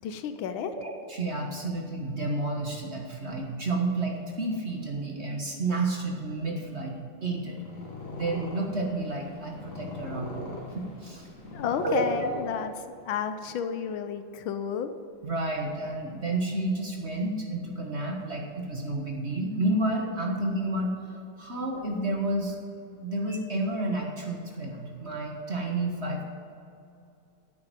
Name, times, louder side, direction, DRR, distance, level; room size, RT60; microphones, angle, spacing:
voice 1, 0.0-0.7 11.5-12.7 13.1-14.9, left 7 dB, 75° left, 9 dB, 1.5 m, -31 dB
voice 2, 0.6-6.9 7.2-7.6 8.1-11.3 11.8-12.0 15.2-22.6 23.0-26.3, right 2 dB, 35° right, 0 dB, 1.4 m, -30 dB
Purr, 7.4-13.1, left 2 dB, 40° left, 1.8 m, -40 dB
9.7 x 8.7 x 9.0 m, 2.6 s
omnidirectional pair, 2.3 m